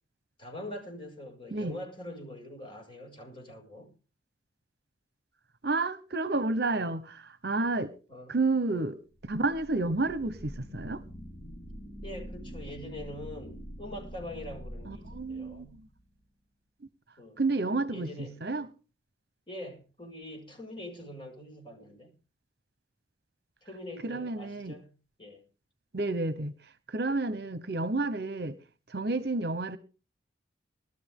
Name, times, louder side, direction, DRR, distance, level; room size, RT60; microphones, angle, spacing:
voice 1, 0.4-3.9 8.1-8.4 12.0-15.8 17.2-17.4 17.9-18.4 19.5-22.1 23.6-25.4, left 1 dB, 25° left, 6.2 m, -44 dB
voice 2, 5.6-7.9 8.3-9.0 9.2-11.0 14.9-15.8 17.4-18.1 18.4-18.7 24.0-24.7 25.9-26.5 26.9-28.6 28.9-29.8, right 3 dB, 55° right, 1.0 m, -30 dB
sound 1, 9.1-16.2, equal, 45° left, 4.3 m, -45 dB
20.5 x 13.0 x 3.7 m
head